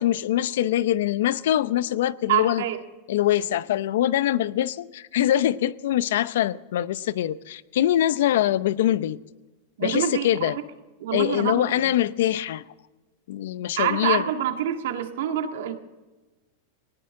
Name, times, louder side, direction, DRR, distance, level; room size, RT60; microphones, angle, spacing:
voice 1, 0.0-2.6 3.1-9.2 9.8-10.6 11.1-12.6 13.3-14.3, left 12 dB, 75° left, 0.6 m, -23 dB
voice 2, 2.3-2.8 9.8-10.5 11.0-11.7 13.8-15.7, right 10 dB, 75° right, 1.9 m, -26 dB
19.0 x 18.5 x 3.8 m
supercardioid pair, 140°, 0 cm